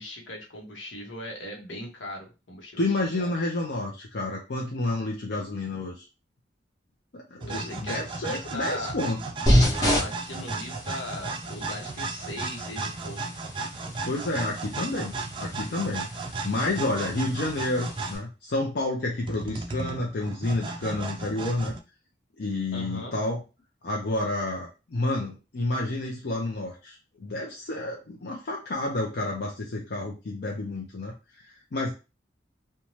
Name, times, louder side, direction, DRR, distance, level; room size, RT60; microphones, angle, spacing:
voice 1, 0.0-3.3 7.5-9.0 10.0-13.2 22.7-23.2, left 1 dB, 85° left, 1 dB, 0.9 m, -39 dB
voice 2, 2.8-6.0 7.1-9.2 14.0-21.8 22.4-23.4 23.8-31.9, left 2 dB, 60° left, -1 dB, 0.5 m, -30 dB
sound 1, 7.4-18.2 19.2-21.8, right 3 dB, 25° right, 0.3 m, -35 dB
sound 2, 9.5-18.2, equal, 20° left, 0.9 m, -30 dB
2.6 x 2.2 x 3.0 m, 0.29 s
head